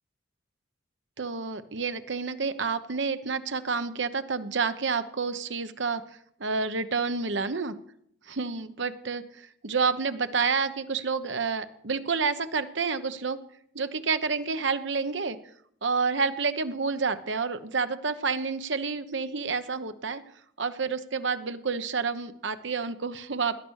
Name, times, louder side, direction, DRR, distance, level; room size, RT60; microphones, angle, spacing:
voice 1, 1.2-6.0 6.4-7.8 8.3-13.4 13.7-15.4 15.8-20.2 20.6-23.5, right 5 dB, 70° right, 10 dB, 1.0 m, -29 dB
17.5 x 11.0 x 6.4 m, 0.70 s
head